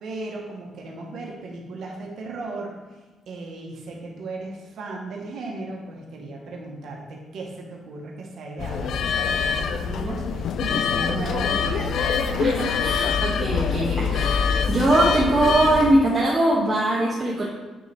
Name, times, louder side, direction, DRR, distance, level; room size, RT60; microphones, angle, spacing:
voice 1, 0.0-2.7 3.3-12.0, right 2 dB, 70° right, -1 dB, 1.3 m, -35 dB
sound 1, 8.6-15.9, left 6 dB, 70° left, 0.4 m, -24 dB
voice 2, 12.4-17.4, right 1 dB, 35° right, -6 dB, 1.3 m, -21 dB
9.0 x 3.1 x 4.5 m, 1.2 s
cardioid pair, 90°, 0 cm